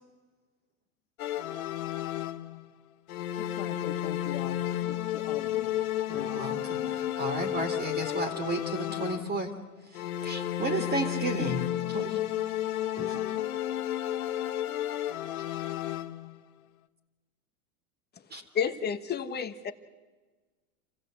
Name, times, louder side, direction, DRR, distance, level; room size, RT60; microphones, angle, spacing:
sound 1, 1.2-2.7 3.1-9.5 9.9-16.4, left 12 dB, 70° left, 1.5 m, -32 dB
voice 1, 3.3-5.7 6.1-7.2, left 11 dB, 50° left, 5 dB, 2.2 m, -42 dB
voice 2, 6.1-9.5 9.9-12.2 13.0-13.2 15.5-15.7 18.3-18.4, right 2 dB, 20° right, 4 dB, 2.5 m, -33 dB
voice 3, 18.5-19.7, left 7 dB, 20° left, 9 dB, 1.4 m, -30 dB
27.5 x 16.0 x 8.0 m, 1.3 s
hypercardioid pair, 120°, 45 cm